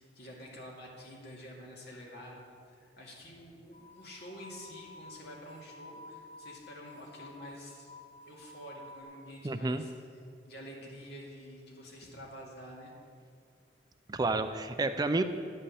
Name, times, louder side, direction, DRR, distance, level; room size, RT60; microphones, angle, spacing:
voice 1, 0.0-7.9 8.3-9.9 10.5-12.9, equal, 65° left, -2 dB, 2.4 m, -48 dB
sound 1, 3.7-9.0, left 2 dB, 45° left, 1.7 m, -51 dB
voice 2, 9.4-9.8 14.1-15.2, right 2 dB, 25° right, 9 dB, 0.4 m, -30 dB
11.0 x 5.4 x 8.5 m, 2.4 s
head